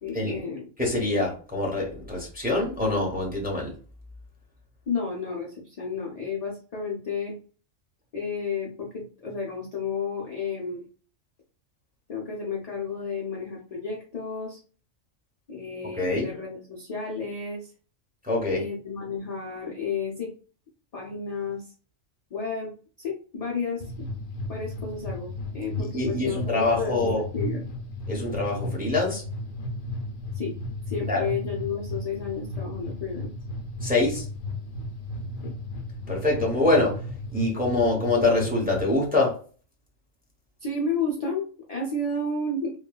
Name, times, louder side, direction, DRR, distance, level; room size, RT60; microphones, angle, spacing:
voice 1, 0.0-0.7 4.9-7.4 8.1-10.8 12.1-14.6 15.5-17.7 18.5-20.3 20.9-21.7 22.3-22.7 23.0-24.1 24.5-27.7 30.3-30.6 30.9-33.3 35.4-35.5 40.6-42.7, left 4 dB, 50° left, -2 dB, 0.5 m, -32 dB
voice 2, 0.8-3.7 16.0-16.3 18.2-18.6 25.9-27.2 28.1-29.2 31.1-31.2 33.8-34.2 36.1-36.9 37.3-39.3, left 2 dB, 10° right, -2 dB, 0.7 m, -25 dB
sound 1, 23.8-38.9, left 1 dB, 75° left, 0.9 m, -34 dB
3.1 x 2.2 x 2.2 m, 0.40 s
omnidirectional pair, 1.3 m